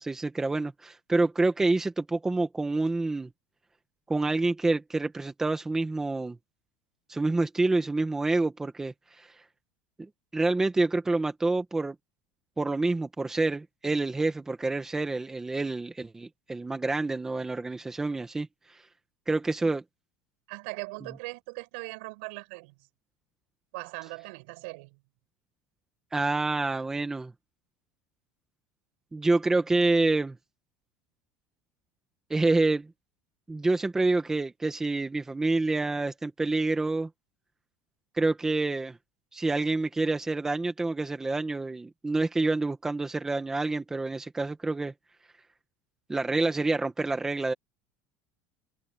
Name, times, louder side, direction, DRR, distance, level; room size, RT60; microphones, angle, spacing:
voice 1, 0.0-3.3 4.1-6.4 7.1-9.3 10.3-11.9 12.6-18.8 19.3-19.8 26.1-27.3 29.1-30.3 32.3-32.9 33.5-37.1 38.1-39.0 39.3-44.9 46.1-47.5, right 2 dB, 5° right, 1.2 m, -27 dB
voice 2, 20.5-22.7 23.7-25.0, right 28 dB, 65° right, 7.7 m, -40 dB
cardioid pair, 180°, 7 cm